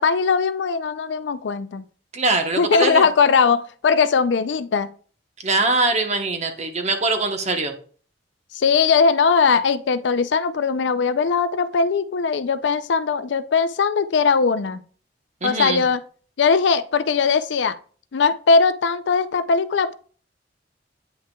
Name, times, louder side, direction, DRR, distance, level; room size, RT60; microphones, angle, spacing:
voice 1, 0.0-1.8 2.6-4.9 8.5-14.8 15.4-16.0 16.4-17.8 18.1-20.0, left 5 dB, 75° left, 14 dB, 0.4 m, -19 dB
voice 2, 2.1-3.1 5.4-7.7 15.4-15.8, right 3 dB, 40° right, 6 dB, 1.0 m, -22 dB
9.0 x 5.6 x 2.3 m, 0.42 s
head